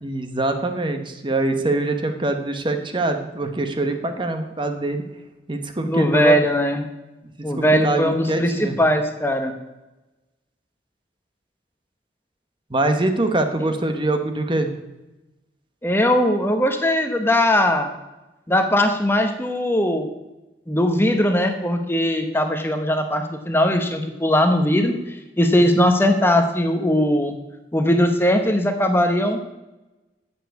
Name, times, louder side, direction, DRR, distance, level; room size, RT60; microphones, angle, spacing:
voice 1, 0.0-5.0 5.5-6.4 7.4-8.8 12.7-14.7, right 2 dB, 30° right, 6 dB, 1.1 m, -24 dB
voice 2, 5.9-6.9 7.4-9.5 13.6-13.7 15.8-17.9 18.5-20.1 20.7-27.3 27.7-29.4, left 1 dB, 15° left, 5 dB, 0.9 m, -19 dB
9.9 x 7.1 x 8.3 m, 1.0 s
head